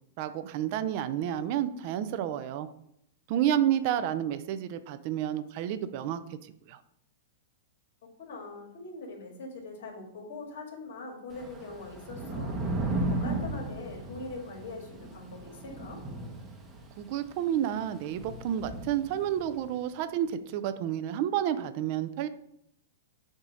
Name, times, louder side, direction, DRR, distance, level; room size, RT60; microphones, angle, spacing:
voice 1, 0.2-2.7 3.3-6.4 6.7-6.8 17.0-22.3, right 10 dB, 45° right, 12 dB, 0.5 m, -30 dB
voice 2, 8.2-16.0, left 3 dB, 70° left, 1 dB, 2.1 m, -42 dB
Thunder / Rain, 11.3-19.7, right 2 dB, 15° right, 0.9 m, -36 dB
7.0 x 2.7 x 4.9 m, 0.74 s
hypercardioid pair, 145°, 0 cm